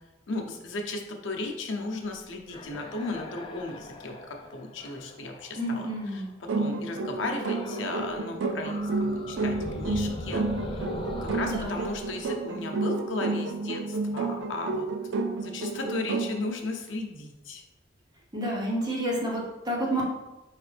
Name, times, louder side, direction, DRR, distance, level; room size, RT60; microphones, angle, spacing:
voice 1, 0.3-4.2 4.5-5.9 6.4-10.9 11.2-14.8 15.3-17.6, left 2 dB, 90° left, 2 dB, 0.7 m, -35 dB
sound 1, 2.1-6.3 7.4-8.2 8.4-13.3, left 1 dB, 25° left, 0.4 m, -41 dB
voice 2, 5.6-6.3 11.4-11.8 18.3-20.0, right 1 dB, 20° right, -4 dB, 1.1 m, -29 dB
sound 2, 6.5-16.4, right 3 dB, 90° right, 0.4 m, -31 dB
4.9 x 3.2 x 3.3 m, 1.0 s
head